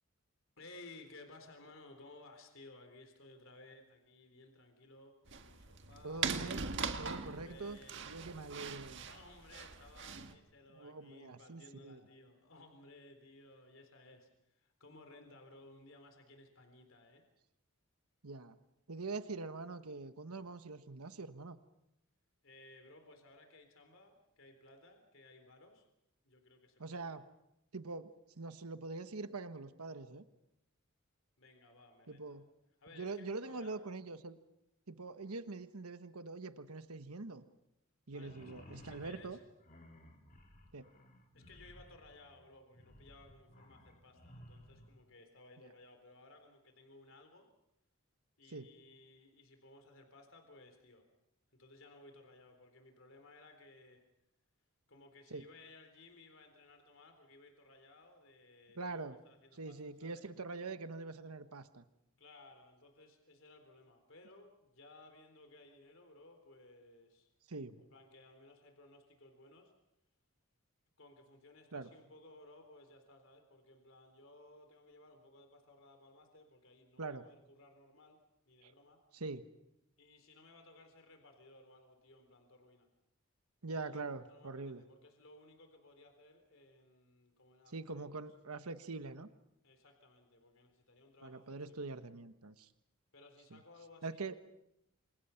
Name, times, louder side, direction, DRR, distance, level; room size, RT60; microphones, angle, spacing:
voice 1, 0.6-6.2 7.1-8.0 9.0-17.2 22.4-25.9 26.2-27.2 31.4-32.4 32.8-33.8 38.1-39.4 41.3-47.5 48.4-51.0 51.5-54.0 54.9-60.2 62.2-67.3 67.8-69.7 71.0-78.2 78.5-79.0 80.0-82.9 83.7-88.2 89.6-91.9 93.1-94.4, left 2 dB, 60° left, 6 dB, 3.9 m, -59 dB
sound 1, 5.3-10.3, right 5 dB, 55° right, 1.7 m, -41 dB
voice 2, 6.0-6.7 7.0-7.8 8.0-9.0 10.7-12.0 18.2-18.6 18.9-21.6 26.8-27.2 27.7-28.1 28.4-30.2 32.1-32.4 32.9-34.4 34.9-37.4 38.1-39.4 40.7-40.9 48.5-48.7 55.3-55.5 58.7-59.2 59.5-61.8 67.5-67.8 71.7-71.9 77.0-77.2 78.6-78.7 79.1-79.4 83.6-84.8 87.7-89.3 91.2-92.7 93.5-93.6 94.0-94.4, right 3 dB, 90° right, 10 dB, 1.3 m, -44 dB
sound 2, 38.1-44.9, left 1 dB, 40° left, 4.3 m, -58 dB
29.0 x 27.0 x 5.8 m, 0.82 s
head